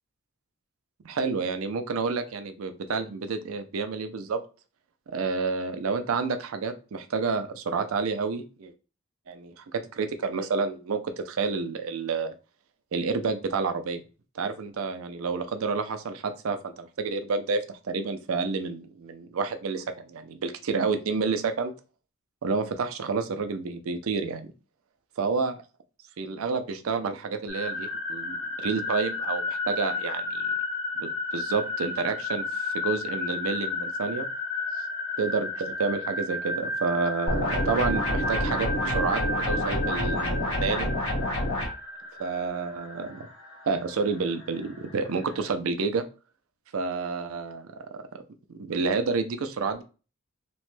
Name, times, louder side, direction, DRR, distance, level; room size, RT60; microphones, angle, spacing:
voice 1, 1.0-4.4 5.1-8.7 9.3-12.3 12.9-14.0 14.3-21.7 22.4-24.5 25.2-25.5 26.2-30.5 31.0-34.3 35.2-40.9 42.2-43.3 43.7-46.0 46.7-48.0 48.6-49.8, right 4 dB, 90° right, 9 dB, 0.5 m, -29 dB
sound 1, 27.5-45.4, left 2 dB, 60° left, 0.9 m, -33 dB
sound 2, 37.3-41.7, left 1 dB, 75° left, 1.5 m, -28 dB
3.0 x 2.1 x 3.1 m, 0.33 s
head